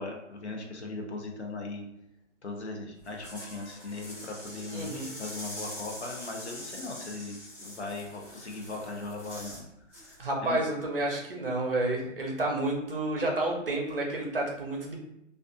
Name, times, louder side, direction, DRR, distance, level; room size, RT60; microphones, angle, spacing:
voice 1, 0.0-1.9 2.4-10.6, left 3 dB, 60° left, 2 dB, 0.7 m, -39 dB
sound 1, 3.0-9.6 9.9-10.2, left 1 dB, 5° right, 1.0 m, -44 dB
voice 2, 4.7-5.1 10.2-15.0, right 2 dB, 45° right, 0 dB, 0.6 m, -30 dB
2.4 x 2.3 x 2.5 m, 0.83 s
hypercardioid pair, 180°, 38 cm